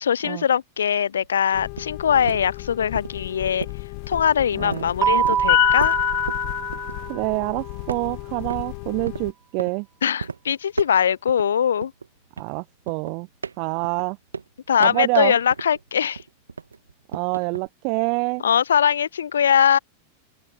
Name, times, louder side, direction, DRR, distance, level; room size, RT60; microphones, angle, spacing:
voice 1, 0.0-3.7 4.1-5.9 10.0-11.9 14.7-16.2 18.4-19.8, left 8 dB, 65° left, 0.8 m, -21 dB
sound 1, 1.2-7.5 7.9-8.7 9.1-9.8 10.2-10.4 10.7-11.5 11.8-15.9 16.2-17.7, right 5 dB, 75° right, 1.8 m, -35 dB
sound 2, 1.5-9.3, left 40 dB or more, 45° left, 1.8 m, -28 dB
voice 2, 4.5-4.9 7.1-9.9 12.4-13.3 13.6-14.2 14.8-15.4 17.1-18.4, right 36 dB, 45° right, 1.3 m, -26 dB
Keyboard (musical), 5.0-7.6, right 9 dB, 25° right, 1.6 m, -25 dB
open air
figure-of-eight pair, 90°, 0 cm